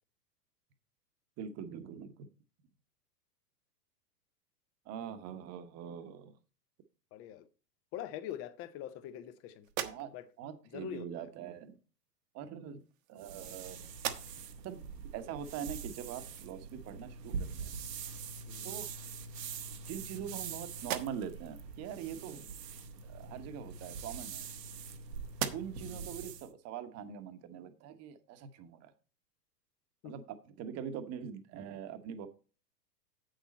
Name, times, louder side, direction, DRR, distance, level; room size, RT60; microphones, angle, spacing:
voice 1, 1.4-2.3 4.9-6.3 9.8-10.1 10.4-11.8 12.3-12.8 13.1-13.9 14.6-17.7 18.6-18.9 19.9-22.4 23.0-24.5 25.5-28.9 30.0-32.3, right 8 dB, 30° right, 1.0 m, -43 dB
voice 2, 7.1-7.5 7.9-9.7 10.1-10.2 10.7-11.3 18.5-18.8 22.4-22.5 25.8-26.0 30.0-30.1, left 10 dB, 30° left, 0.7 m, -44 dB
sound 1, 9.6-10.5 11.6-11.8 12.7-13.6 13.9-14.6 15.1-15.2 17.9-18.0 18.4-19.1 19.7-20.4 20.8-21.5 23.5-24.9 25.3-26.0, right 11 dB, 50° right, 1.0 m, -42 dB
sound 2, 13.2-26.5, right 5 dB, 75° right, 1.1 m, -44 dB
7.9 x 6.6 x 4.1 m
hypercardioid pair, 110°, 49 cm